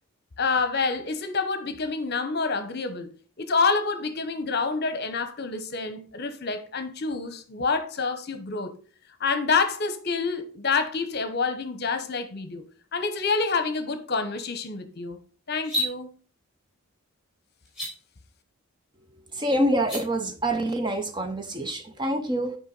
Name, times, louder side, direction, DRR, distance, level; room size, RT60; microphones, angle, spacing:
voice 1, 0.4-3.1 3.4-8.7 9.2-12.6 12.9-15.2 15.5-16.1, left 4 dB, 45° left, 0.9 m, -27 dB
sound 1, 15.6-15.9 17.6-17.9 19.7-20.0, left 1 dB, ahead, 4.0 m, -28 dB
voice 2, 19.3-22.6, right 1 dB, 20° right, 0.6 m, -26 dB
9.4 x 5.0 x 4.0 m
head